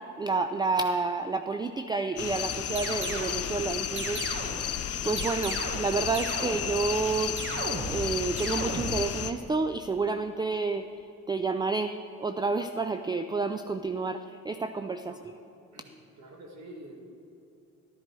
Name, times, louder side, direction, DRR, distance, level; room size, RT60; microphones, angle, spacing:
voice 1, 0.2-4.6 5.0-7.4 7.6-10.8 11.3-15.2, right 4 dB, 15° right, 9 dB, 0.4 m, -30 dB
sound 1, 2.2-9.3, left 9 dB, 55° left, 0.7 m, -33 dB
sound 2, 2.8-3.4 4.0-4.7 5.2-5.9 6.1-6.8 7.4-8.1 8.4-9.0, right 2 dB, 40° right, 1.6 m, -35 dB
voice 2, 15.0-15.3 15.7-17.0, right 1 dB, 65° right, 1 dB, 2.1 m, -48 dB
12.0 x 10.5 x 4.6 m, 2.9 s
cardioid pair, 90°, 30 cm